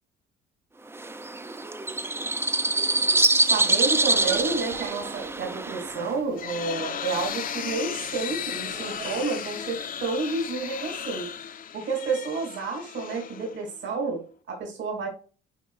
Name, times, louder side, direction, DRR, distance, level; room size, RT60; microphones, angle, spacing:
sound 1, 0.9-6.1, right 2 dB, 10° right, 0.5 m, -25 dB
voice 1, 3.5-11.3 11.7-15.1, right 4 dB, 60° right, 1 dB, 3.1 m, -30 dB
sound 2, 4.1-9.3, right 8 dB, 80° right, 1.2 m, -43 dB
sound 3, 6.0-13.9, left 8 dB, 40° left, 0.7 m, -35 dB
9.2 x 4.7 x 2.5 m, 0.36 s
cardioid pair, 100°, 21 cm